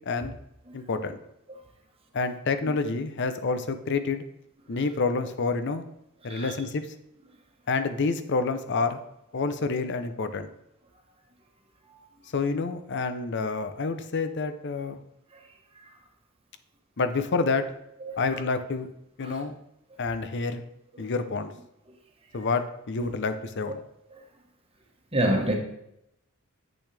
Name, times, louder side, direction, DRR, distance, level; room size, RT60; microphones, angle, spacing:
voice 1, 0.1-0.4 0.7-1.2 2.1-4.2 4.7-5.8 6.2-6.9 7.7-9.0 9.3-10.5 12.3-15.0 17.0-17.7 18.2-18.9 19.2-19.6 20.0-20.6 21.0-21.5 22.3-23.7, left 4 dB, 55° left, 10 dB, 0.6 m, -28 dB
voice 2, 6.2-6.5 11.9-12.0 15.3-15.5 18.0-18.4 19.2-19.4 20.9-21.1 21.9-22.0 23.0-23.1 24.1-24.2 25.1-25.6, right 1 dB, 25° right, 1 dB, 1.3 m, -29 dB
8.4 x 6.2 x 3.4 m, 0.82 s
head